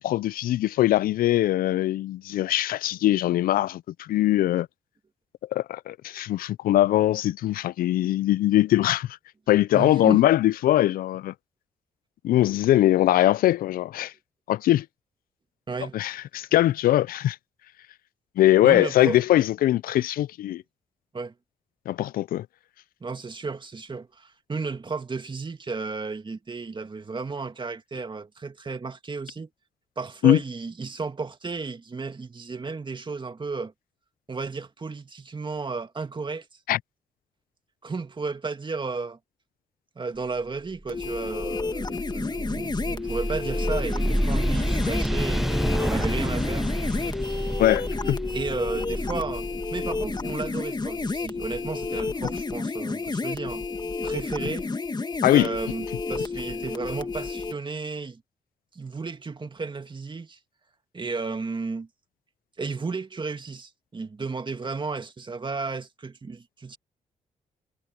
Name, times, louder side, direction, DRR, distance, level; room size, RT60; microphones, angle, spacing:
voice 1, 0.0-4.7 5.5-9.1 9.5-11.3 12.2-14.1 14.5-14.9 15.9-17.4 18.4-20.6 21.9-22.5 30.2-30.4 36.7-36.8 47.6-48.2 55.2-55.5, left 14 dB, 80° left, 0.5 m, -21 dB
voice 2, 9.7-10.2 15.7-16.0 18.6-19.2 21.1-21.3 23.0-29.5 30.0-33.7 34.3-36.5 37.8-39.2 40.0-47.6 48.3-53.6 54.0-54.7 55.3-58.2 58.7-60.4 60.9-61.9 62.6-66.8, right 4 dB, 35° right, 2.1 m, -33 dB
sound 1, 40.9-57.5, left 4 dB, 30° left, 1.5 m, -31 dB
sound 2, 41.0-51.7, equal, ahead, 0.4 m, -29 dB
cardioid pair, 65°, 15 cm